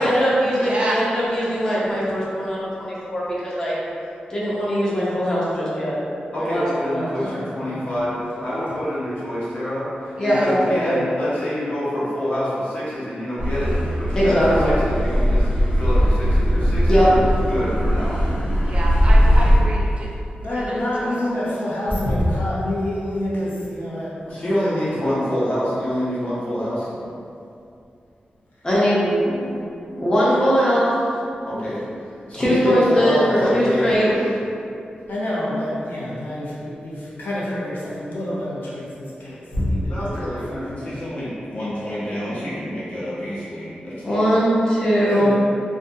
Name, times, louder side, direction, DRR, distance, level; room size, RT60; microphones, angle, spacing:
voice 1, 0.0-3.8 4.3-6.0 6.4-7.1 10.2-11.0 14.1-14.7 16.9-17.1 28.6-29.4 29.9-30.9 32.3-34.1 44.0-45.3, equal, 20° left, -8 dB, 0.5 m, -20 dB
voice 2, 0.6-1.0 10.2-10.5 18.7-20.1 20.5-21.2, right 1 dB, 40° right, -3 dB, 0.3 m, -29 dB
voice 3, 6.3-15.5 15.8-17.2 17.5-18.1 24.2-26.9 31.4-31.8 32.2-34.3 39.2-39.3 39.9-44.2, equal, 45° left, -10 dB, 0.8 m, -26 dB
voice 4, 7.2-7.8 20.4-24.2 35.1-40.9 42.2-42.4 45.0-45.4, left 1 dB, 80° left, -8 dB, 0.6 m, -27 dB
Car passing by / Accelerating revving vroom, 13.4-19.6, equal, 65° left, 1.2 m, -19 dB
2.4 x 2.2 x 2.6 m, 2.6 s
wide cardioid pair, 165°, 3 cm